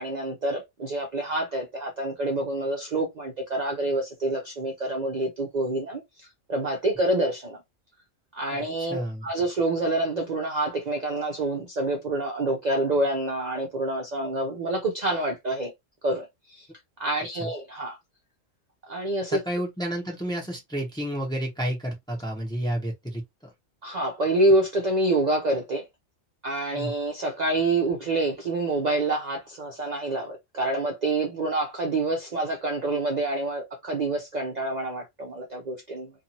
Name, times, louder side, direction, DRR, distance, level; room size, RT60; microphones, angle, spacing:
voice 1, 0.0-6.0 6.5-7.6 8.3-15.7 16.0-16.7 17.0-18.0 18.9-19.4 23.8-25.8 26.4-36.1, right 2 dB, 45° right, 0.6 m, -27 dB
voice 2, 8.5-9.3 17.3-17.5 19.3-23.2 26.7-26.9, right 1 dB, 5° left, 0.7 m, -31 dB
2.6 x 2.5 x 2.8 m
omnidirectional pair, 1.3 m